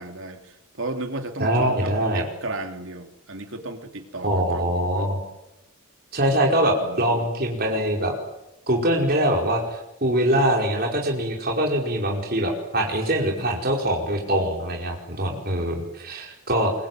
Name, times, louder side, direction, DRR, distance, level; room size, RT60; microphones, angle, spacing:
voice 1, 0.0-5.1 6.8-7.3, right 2 dB, 65° right, 5 dB, 3.3 m, -35 dB
voice 2, 1.4-2.3 4.2-5.2 6.1-8.1 8.7-16.7, right 1 dB, 45° right, 0 dB, 5.1 m, -23 dB
25.0 x 24.0 x 9.3 m, 0.92 s
head